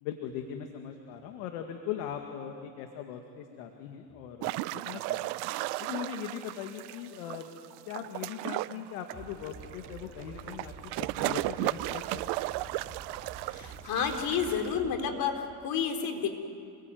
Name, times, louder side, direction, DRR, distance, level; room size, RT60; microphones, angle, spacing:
voice 1, 0.0-5.3 5.8-7.5 7.9-12.3, left 9 dB, 85° left, 4 dB, 2.2 m, -40 dB
sound 1, 4.4-14.7, right 19 dB, 70° right, 0.7 m, -35 dB
sound 2, 9.1-15.1, right 4 dB, 20° right, 4.3 m, -48 dB
voice 2, 13.5-16.3, left 6 dB, 55° left, 4 dB, 4.0 m, -30 dB
29.0 x 21.5 x 9.4 m, 2.4 s
cardioid pair, 120°, 41 cm